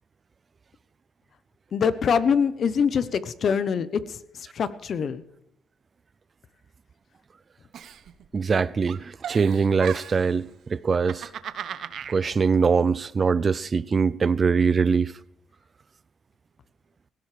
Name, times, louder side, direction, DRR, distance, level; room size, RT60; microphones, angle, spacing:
voice 1, 1.7-5.2, left 6 dB, 55° left, 0.9 m, -24 dB
Giggle, 7.7-8.6 8.9-10.3 10.9-12.2, right 9 dB, 65° right, 0.8 m, -37 dB
voice 2, 8.3-11.3 12.1-15.1, right 5 dB, 40° right, 0.5 m, -22 dB
17.5 x 16.5 x 3.4 m
cardioid pair, 90°, 0 cm